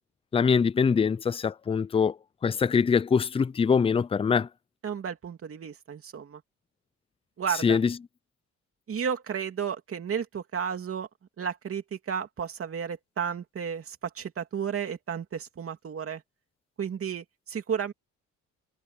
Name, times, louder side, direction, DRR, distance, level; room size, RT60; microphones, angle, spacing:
voice 1, 0.3-2.1 2.4-4.5 7.6-7.9, left 6 dB, 20° left, 0.4 m, -23 dB
voice 2, 4.8-6.4 7.4-7.8 8.9-11.1 11.4-16.2 16.8-17.9, right 7 dB, 50° right, 2.8 m, -33 dB
cardioid pair, 90°, 30 cm